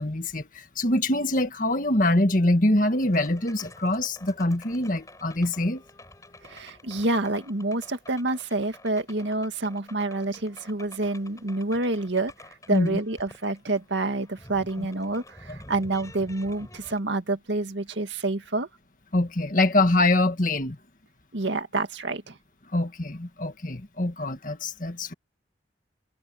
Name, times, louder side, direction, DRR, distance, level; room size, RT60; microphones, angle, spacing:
voice 1, 0.0-5.8 12.7-13.0 14.8-14.9 19.1-20.8 22.7-25.1, left 1 dB, 45° left, 1.8 m, -24 dB
sound 1, 2.9-17.0, left 2 dB, 15° left, 7.4 m, -49 dB
voice 2, 6.4-12.3 12.7-18.7 21.3-22.4, right 2 dB, 80° right, 2.0 m, -28 dB
head